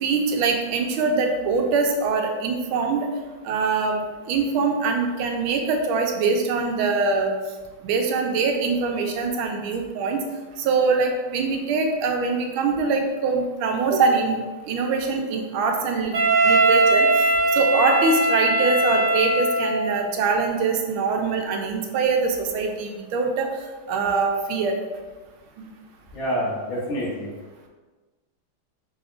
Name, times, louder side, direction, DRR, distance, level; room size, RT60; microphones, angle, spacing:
voice 1, 0.0-3.1 3.4-7.3 7.8-10.2 10.6-14.4 14.6-16.2 16.4-17.3 17.5-23.5 23.9-24.8 25.6-25.7, right 4 dB, 80° right, 3 dB, 1.3 m, -23 dB
Wind instrument woodwind instrument, 16.1-20.0, right 2 dB, 45° right, 1.3 m, -20 dB
voice 2, 26.1-27.3, equal, 65° left, -6 dB, 2.0 m, -27 dB
5.0 x 3.2 x 2.4 m, 1.3 s
omnidirectional pair, 2.4 m